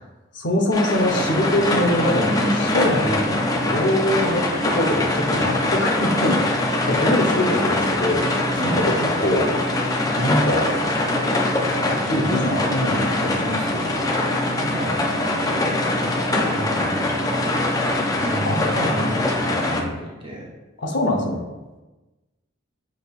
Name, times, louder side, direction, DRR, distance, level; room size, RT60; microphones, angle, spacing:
voice 1, 0.3-3.3 3.6-9.5 10.1-10.7 11.8-13.9 18.5-19.1 20.8-21.4, left 1 dB, 60° left, 1 dB, 0.8 m, -23 dB
sound 1, 0.7-19.8, left 2 dB, 20° left, 0.4 m, -23 dB
sound 2, 0.9-19.9, equal, 80° right, 1.5 m, -30 dB
voice 2, 8.6-8.9 14.6-15.0 16.0-20.4, equal, 25° right, -3 dB, 0.6 m, -33 dB
6.3 x 3.5 x 2.4 m, 1.1 s
head